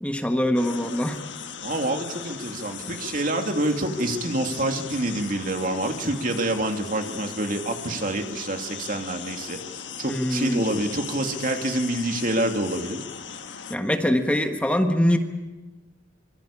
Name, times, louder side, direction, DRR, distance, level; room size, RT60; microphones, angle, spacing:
voice 1, 0.0-1.2 10.0-10.6 13.7-15.2, equal, 5° left, 5 dB, 1.4 m, -23 dB
sound 1, 0.5-13.8, left 7 dB, 75° left, 1.5 m, -38 dB
voice 2, 1.6-9.6 10.0-13.0, right 1 dB, 45° right, 4 dB, 2.7 m, -27 dB
25.5 x 24.0 x 8.6 m, 1.2 s
head